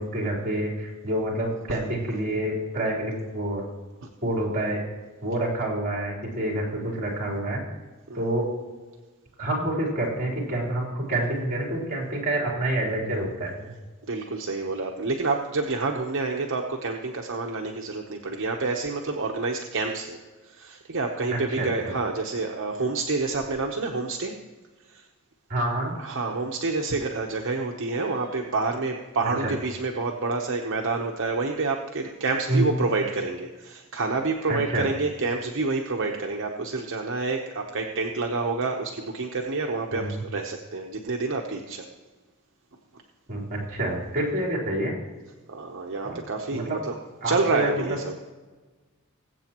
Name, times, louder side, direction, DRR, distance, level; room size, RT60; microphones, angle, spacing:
voice 1, 0.0-3.6 4.2-4.8 5.2-7.6 8.1-8.5 9.4-13.7 21.5-21.9 25.5-25.9 29.2-29.5 32.5-32.7 34.5-34.9 39.9-40.2 43.3-44.9 46.0-46.2 46.5-46.8 47.2-48.0, right 1 dB, 40° right, -2 dB, 3.5 m, -27 dB
voice 2, 14.1-20.2 20.4-24.3 24.9-25.0 26.0-41.8 45.5-46.9 47.2-48.1, right 3 dB, 65° right, 2 dB, 0.9 m, -28 dB
21.0 x 8.0 x 3.0 m, 1.3 s
head